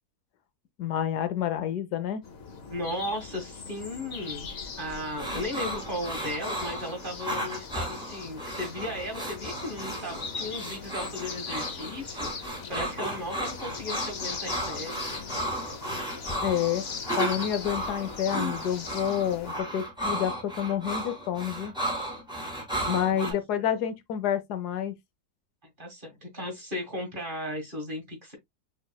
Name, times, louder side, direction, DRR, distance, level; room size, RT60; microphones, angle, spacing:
voice 1, 0.8-2.2 16.4-16.8 17.2-21.7 22.9-24.9, left 9 dB, 75° left, 1.2 m, -29 dB
sound 1, 2.2-19.6, left 5 dB, 45° left, 1.0 m, -40 dB
voice 2, 2.7-15.0 22.7-23.2 25.8-28.3, left 1 dB, 30° right, 1.8 m, -36 dB
sound 2, 5.2-23.3, right 1 dB, 5° right, 2.1 m, -34 dB
6.3 x 3.3 x 2.2 m
omnidirectional pair, 1.7 m